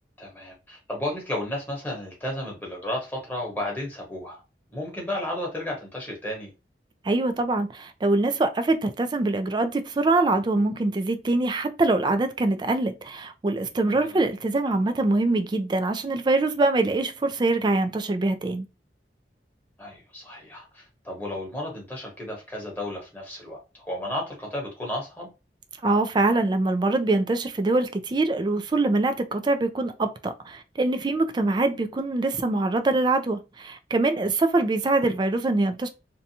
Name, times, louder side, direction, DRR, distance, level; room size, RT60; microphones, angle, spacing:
voice 1, 0.2-4.4 4.7-6.5 13.9-14.2 19.8-25.3, left 1 dB, 10° left, 1.0 m, -33 dB
voice 2, 7.0-18.7 25.8-35.9, right 2 dB, 25° right, 0.3 m, -24 dB
2.6 x 2.2 x 2.7 m
head